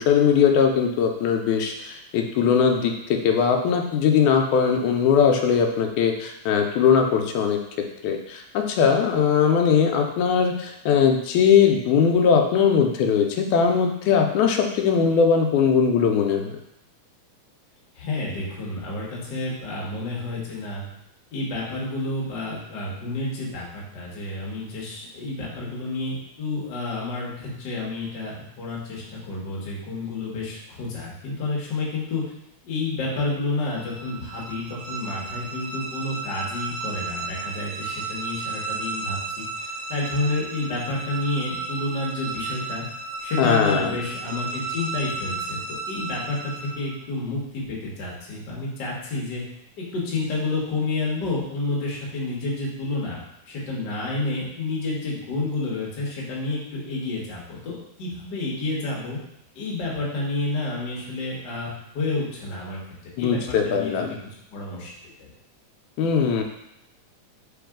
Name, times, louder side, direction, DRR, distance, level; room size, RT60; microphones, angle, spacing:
voice 1, 0.0-7.6 8.0-16.5 43.4-43.9 63.2-64.1 66.0-66.4, left 6 dB, 85° left, 3 dB, 2.0 m, -20 dB
voice 2, 17.9-20.9 21.3-32.2 32.6-42.8 43.2-49.4 49.8-53.2 53.5-59.2 59.5-64.1 64.5-64.9 65.2-65.3, left 2 dB, 55° left, -4 dB, 1.3 m, -30 dB
sound 1, 33.6-47.0, right 3 dB, 80° right, 1.8 m, -33 dB
3.9 x 3.8 x 3.6 m, 0.81 s
omnidirectional pair, 3.4 m